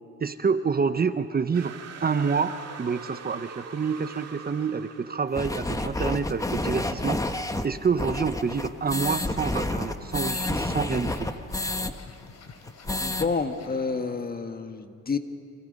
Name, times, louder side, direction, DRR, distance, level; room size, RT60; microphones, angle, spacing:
voice 1, 0.2-1.7 2.0-7.2 7.6-11.3, right 5 dB, 30° right, 10 dB, 0.9 m, -27 dB
sound 1, 1.5-6.0, right 6 dB, 60° right, 2.1 m, -43 dB
sound 2, 5.3-11.9 12.2-12.3 12.6-13.3, left 2 dB, 10° left, 1.2 m, -29 dB
sound 3, 9.1-14.3, left 5 dB, 60° left, 3.3 m, -49 dB
voice 2, 13.0-15.2, left 4 dB, 30° left, 7 dB, 1.5 m, -29 dB
29.5 x 25.5 x 5.4 m, 2.6 s
cardioid pair, 90°, 30 cm